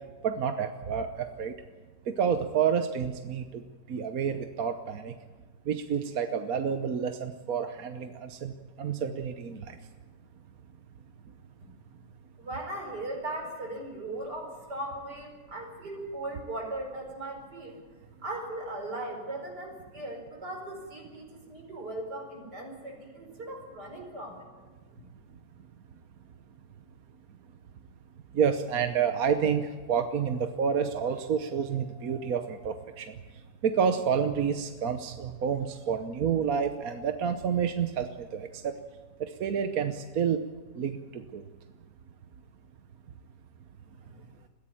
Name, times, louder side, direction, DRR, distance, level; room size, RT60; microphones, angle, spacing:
voice 1, 0.2-1.5 2.1-3.6 3.9-5.1 5.7-9.8 28.3-33.2 33.6-38.7 39.2-40.4 40.7-41.4, right 7 dB, 65° right, 7 dB, 1.4 m, -29 dB
voice 2, 12.4-17.8 18.2-24.5 25.0-25.1 44.0-44.2, right 1 dB, 85° right, 2 dB, 5.5 m, -38 dB
21.5 x 15.5 x 9.1 m, 1.3 s
omnidirectional pair, 1.7 m